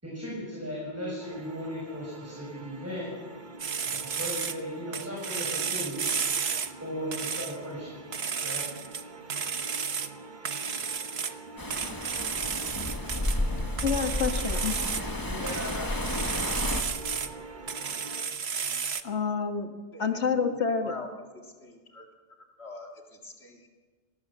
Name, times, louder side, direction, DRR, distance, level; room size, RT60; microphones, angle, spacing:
voice 1, 0.0-3.1 3.9-6.1 6.8-7.9 8.4-8.6 13.8-14.4 15.2-16.4, equal, 15° right, -3 dB, 6.6 m, -37 dB
sound 1, 1.2-18.2, right 2 dB, 45° right, 1.6 m, -46 dB
sound 2, 3.6-4.6 4.9-6.7 7.1-7.6 8.1-9.0 9.3-10.1 10.4-11.3 11.7-13.4 13.8-15.0 15.5-17.3 17.7-19.0, right 6 dB, 65° right, 1.4 m, -32 dB
sound 3, 11.6-16.8, left 1 dB, 20° left, 1.8 m, -32 dB
voice 2, 13.8-14.7 19.0-19.7 20.0-20.9, left 5 dB, 90° left, 6 dB, 2.1 m, -28 dB
voice 3, 19.9-21.1 21.3-22.1 22.6-23.7, left 3 dB, 70° left, 2 dB, 2.6 m, -44 dB
30.0 x 19.0 x 7.5 m, 1.5 s
omnidirectional pair, 1.1 m